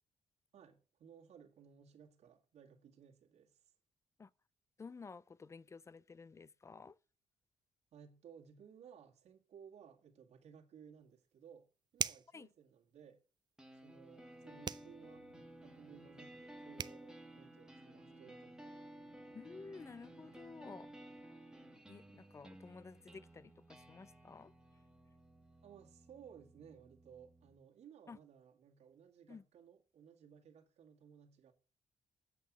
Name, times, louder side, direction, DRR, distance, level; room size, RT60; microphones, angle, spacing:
voice 1, 0.5-3.7 7.9-11.7 11.9-13.2 13.7-15.3 15.6-18.9 25.6-31.5, right 7 dB, 75° right, 1.9 m, -59 dB
voice 2, 4.8-7.0 12.3-12.5 19.3-20.9 21.9-24.5 28.1-28.2 29.3-29.4, left 4 dB, 25° left, 0.4 m, -53 dB
sound 1, 11.0-11.1 11.9-12.4 14.6-14.9 16.4-16.5 16.8-17.0, right 7 dB, 40° right, 0.5 m, -38 dB
sound 2, 13.6-27.6, right 1 dB, 5° right, 1.5 m, -56 dB
sound 3, 14.3-23.3, left 3 dB, 85° left, 4.6 m, -71 dB
8.5 x 5.5 x 7.1 m
cardioid pair, 100°, 11 cm